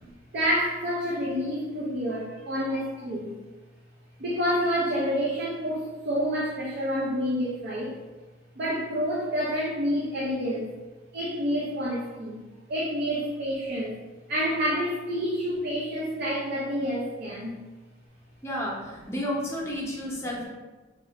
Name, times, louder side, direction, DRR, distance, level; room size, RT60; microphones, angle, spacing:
voice 1, 0.0-3.4 4.2-7.9 8.6-10.7 11.1-12.4 12.7-14.0 14.3-17.6, equal, 55° right, -5 dB, 0.5 m, -28 dB
voice 2, 18.4-20.5, equal, 15° left, -4 dB, 0.7 m, -31 dB
3.0 x 2.4 x 3.1 m, 1.2 s
head